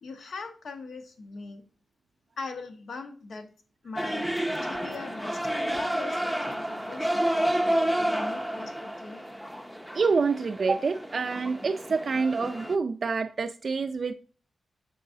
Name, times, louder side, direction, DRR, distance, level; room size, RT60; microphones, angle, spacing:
voice 1, 0.0-1.6 2.4-3.5 3.8-4.3 4.6-9.2, left 4 dB, 75° left, 0.9 m, -41 dB
sound 1, 4.0-12.8, right 1 dB, 5° left, 0.6 m, -30 dB
voice 2, 9.9-14.1, right 4 dB, 50° right, 0.3 m, -27 dB
8.0 x 4.6 x 2.6 m
wide cardioid pair, 100°, 0 cm